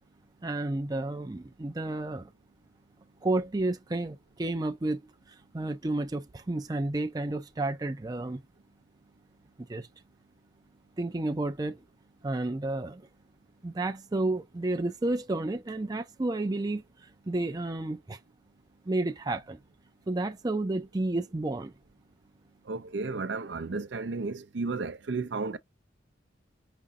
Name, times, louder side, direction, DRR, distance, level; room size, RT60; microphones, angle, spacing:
voice 1, 0.4-2.3 3.2-5.0 5.5-8.4 9.7-9.9 11.0-11.8 12.2-13.1 13.6-18.2 18.9-19.6 20.1-21.7, right 2 dB, 20° right, 0.5 m, -31 dB
voice 2, 22.6-25.6, right 3 dB, 70° right, 0.6 m, -33 dB
5.2 x 2.7 x 3.6 m
head